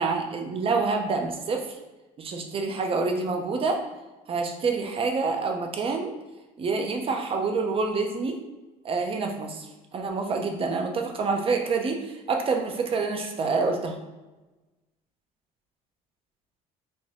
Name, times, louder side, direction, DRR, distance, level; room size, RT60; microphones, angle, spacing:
voice 1, 0.0-1.8 2.2-3.8 4.3-6.1 6.6-8.4 8.8-9.7 9.9-14.0, right 4 dB, 35° right, 4 dB, 0.5 m, -27 dB
2.6 x 2.2 x 3.2 m, 1.1 s
supercardioid pair, 85°, 16 cm